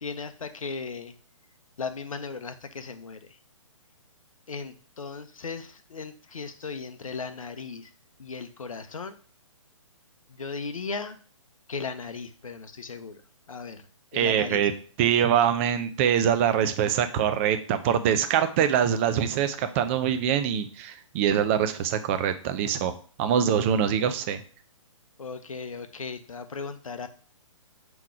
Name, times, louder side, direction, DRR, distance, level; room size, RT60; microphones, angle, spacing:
voice 1, 0.0-1.1 1.8-3.4 4.5-7.9 8.2-9.2 10.3-11.2 11.7-13.2 13.5-13.8 14.1-14.7 25.2-27.1, left 4 dB, 85° left, 9 dB, 0.6 m, -37 dB
voice 2, 14.1-14.7 15.0-24.4, right 8 dB, 25° right, 9 dB, 0.4 m, -24 dB
3.7 x 3.0 x 4.8 m, 0.41 s
hypercardioid pair, 135°, 17 cm